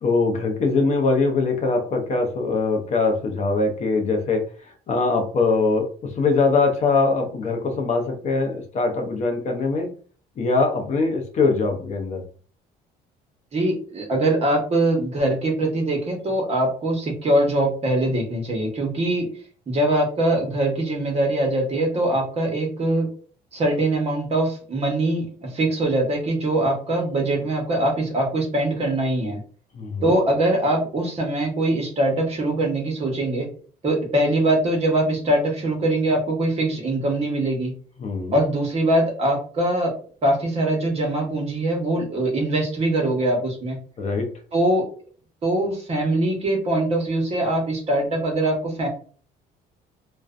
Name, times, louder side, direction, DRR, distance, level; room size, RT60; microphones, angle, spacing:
voice 1, 0.0-4.4 4.9-9.9 10.4-12.2 29.7-30.1 38.0-38.4 44.0-44.3, left 3 dB, 45° left, 3 dB, 0.6 m, -22 dB
voice 2, 13.5-19.3 19.7-23.1 23.5-29.4 30.0-33.5 33.8-37.7 38.3-39.9 40.2-43.8 44.5-44.8 45.4-48.9, right 1 dB, 40° right, 1 dB, 0.9 m, -22 dB
2.4 x 2.1 x 2.4 m, 0.43 s
cardioid pair, 110°, 17 cm